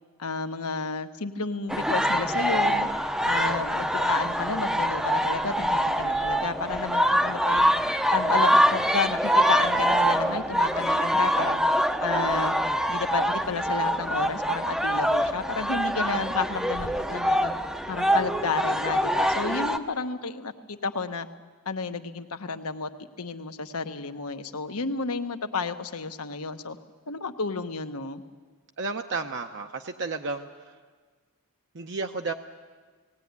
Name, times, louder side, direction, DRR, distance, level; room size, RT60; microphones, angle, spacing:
voice 1, 0.2-2.9 3.2-7.7 8.1-11.6 12.0-12.6 12.9-17.5 17.9-21.3 21.7-22.9 23.2-26.8 27.1-28.2, left 4 dB, 75° left, 8 dB, 1.1 m, -31 dB
sound 1, 1.7-19.8, equal, ahead, 0.6 m, -24 dB
voice 2, 28.8-30.5 31.7-32.3, right 3 dB, 55° right, 5 dB, 0.8 m, -32 dB
18.5 x 18.0 x 9.5 m, 1.5 s
head